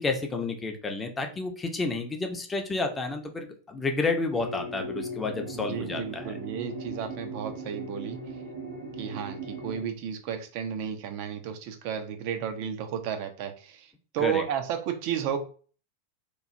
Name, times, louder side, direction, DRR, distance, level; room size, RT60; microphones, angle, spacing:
voice 1, 0.0-6.4 14.2-14.4, left 3 dB, 15° left, 4 dB, 0.5 m, -30 dB
sound 1, 4.3-9.8, right 1 dB, 80° right, 1.0 m, -38 dB
voice 2, 5.5-8.2 9.0-13.9 14.1-15.4, right 8 dB, 45° right, 7 dB, 0.4 m, -32 dB
3.0 x 2.3 x 2.5 m, 0.41 s
figure-of-eight pair, 90°, 0 cm